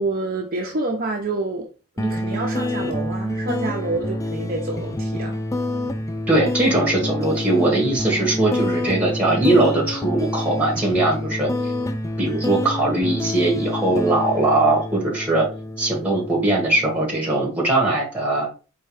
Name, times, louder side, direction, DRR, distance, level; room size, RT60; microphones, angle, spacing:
voice 1, 0.0-1.7 2.0-5.4, right 2 dB, 40° right, 0.7 m, -27 dB
sound 1, 2.0-17.0, left 1 dB, 15° left, 0.3 m, -27 dB
voice 2, 6.3-11.7 12.2-15.5 15.8-18.5, right 2 dB, 5° right, 1.7 m, -20 dB
4.6 x 3.5 x 3.3 m
head